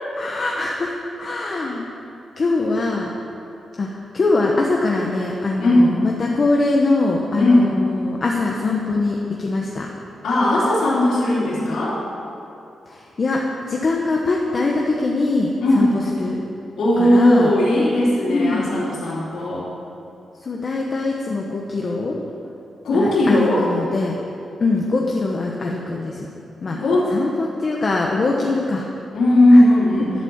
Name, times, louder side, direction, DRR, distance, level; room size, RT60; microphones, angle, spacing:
voice 1, 0.2-1.9 2.4-3.1 3.8-3.9 4.1-9.9 12.9-16.4 17.0-17.5 18.3-18.7 20.4-22.1 22.9-24.1 24.6-26.3 26.6-26.8 27.1-28.9 29.5-29.6, left 3 dB, 35° left, -1 dB, 1.0 m, -22 dB
voice 2, 7.4-7.7 10.2-12.0 15.6-15.9 16.8-19.7 22.8-23.6 26.7-27.2 28.4-28.5 29.1-30.1, left 1 dB, 75° left, -8 dB, 3.6 m, -17 dB
12.0 x 8.2 x 7.3 m, 2.8 s
wide cardioid pair, 175°, 0 cm